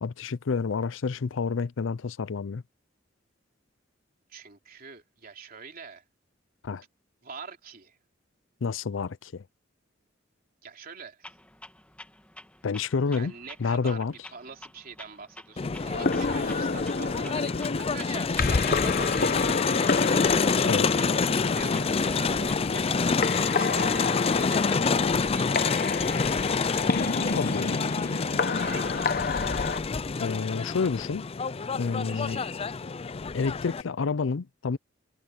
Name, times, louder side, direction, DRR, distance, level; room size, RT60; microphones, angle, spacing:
voice 1, 0.0-2.6 6.6-6.8 8.6-9.4 12.6-13.3 13.6-14.1 20.7-20.9 27.4-27.8 30.2-31.2 31.7-32.4 33.3-34.8, left 5 dB, 85° left, 0.5 m, -29 dB
voice 2, 4.3-6.0 7.2-8.0 10.6-11.3 13.1-20.3 21.5-23.2 23.5-27.4 28.5-29.1 32.0-32.5, right 5 dB, 50° right, 3.2 m, -44 dB
Clock, 11.2-23.2, left 1 dB, 5° left, 2.5 m, -50 dB
Crowd, 15.6-33.8, left 4 dB, 30° left, 0.4 m, -27 dB
sound 1, 15.9-29.8, left 4 dB, 50° left, 1.0 m, -30 dB
head